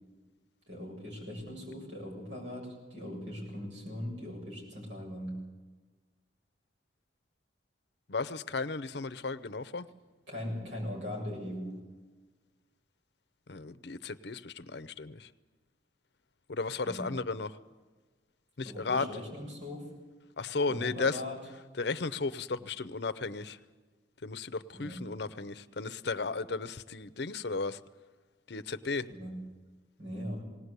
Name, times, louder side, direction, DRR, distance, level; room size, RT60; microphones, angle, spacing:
voice 1, 0.7-5.4 10.3-11.8 16.8-17.1 18.7-19.9 20.7-21.4 24.7-25.1 29.1-29.4 30.0-30.4, left 1 dB, 75° right, -1 dB, 7.2 m, -40 dB
voice 2, 8.1-9.9 13.5-15.3 16.5-17.6 18.6-19.1 20.4-21.2 21.8-23.6 24.2-27.8 28.5-29.1, left 4 dB, 65° left, 13 dB, 0.7 m, -34 dB
19.5 x 18.0 x 8.1 m, 1.3 s
head